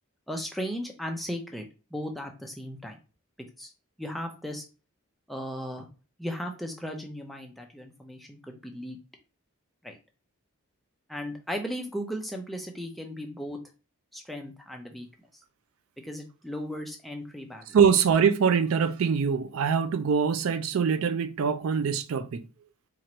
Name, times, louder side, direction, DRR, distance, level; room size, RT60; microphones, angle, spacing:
voice 1, 0.3-3.0 3.6-3.7 4.0-4.6 5.3-5.9 6.2-9.0 9.8-10.0 11.1-13.6 14.1-15.1 16.0-17.8, equal, ahead, 0.5 m, -36 dB
voice 2, 17.7-22.4, right 6 dB, 65° right, 0.4 m, -23 dB
4.4 x 2.5 x 2.9 m
head